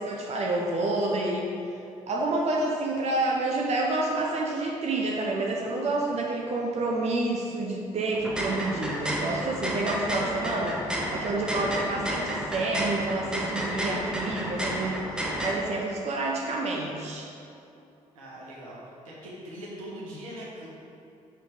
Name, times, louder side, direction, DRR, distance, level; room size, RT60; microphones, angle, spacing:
voice 1, 0.0-1.5 2.1-17.3, right 2 dB, 40° right, -1 dB, 0.9 m, -29 dB
sound 1, 8.1-15.5, equal, 5° right, 1.4 m, -31 dB
voice 2, 18.1-20.7, equal, 75° right, -6 dB, 1.4 m, -41 dB
6.3 x 5.5 x 5.0 m, 2.7 s
figure-of-eight pair, 45°, 17 cm